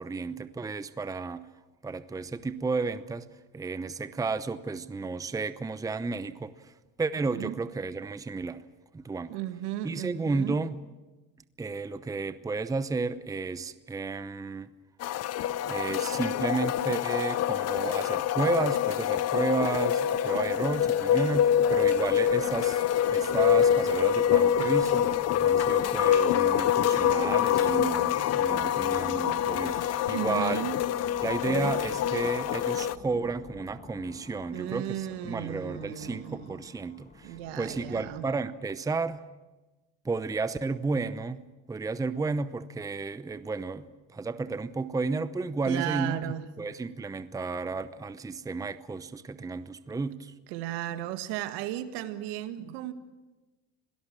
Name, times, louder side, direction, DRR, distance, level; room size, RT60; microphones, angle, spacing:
voice 1, 0.0-1.5 1.8-3.3 3.5-6.7 7.0-8.6 8.9-9.4 9.8-10.8 11.6-14.7 15.7-22.8 23.1-25.1 25.4-30.6 31.2-39.2 40.0-41.4 41.7-43.8 44.1-46.2 46.6-50.3, right 4 dB, 10° right, 0.7 m, -32 dB
voice 2, 9.3-10.6 30.1-30.7 31.5-31.8 34.5-36.5 37.2-38.3 45.7-46.5 49.9-50.0 50.5-52.9, right 12 dB, 75° right, 1.8 m, -35 dB
sound 1, 15.0-33.0, left 9 dB, 40° left, 0.7 m, -26 dB
sound 2, 20.3-38.2, left 3 dB, 20° left, 2.3 m, -50 dB
26.5 x 17.5 x 7.4 m
supercardioid pair, 100°, 39 cm